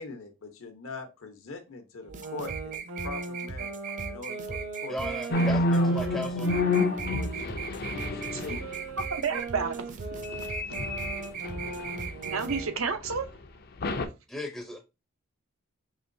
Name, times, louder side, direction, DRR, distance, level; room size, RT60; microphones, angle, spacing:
voice 1, 0.0-3.8 4.0-5.0 5.3-6.0 7.1-8.7, left 3 dB, 75° left, 0.9 m, -42 dB
sound 1, 2.0-7.4 7.9-12.8, right 3 dB, 60° right, 1.0 m, -40 dB
sound 2, 2.1-12.6, right 6 dB, 40° right, 0.6 m, -38 dB
voice 2, 4.9-6.5 14.3-14.8, left 1 dB, 5° left, 0.5 m, -36 dB
sound 3, 5.3-8.9 10.2-12.5 13.0-13.2 13.8-14.1, left 2 dB, 50° left, 0.5 m, -29 dB
voice 3, 9.0-10.5 12.2-13.3, right 5 dB, 75° right, 0.7 m, -31 dB
4.9 x 3.0 x 2.6 m
head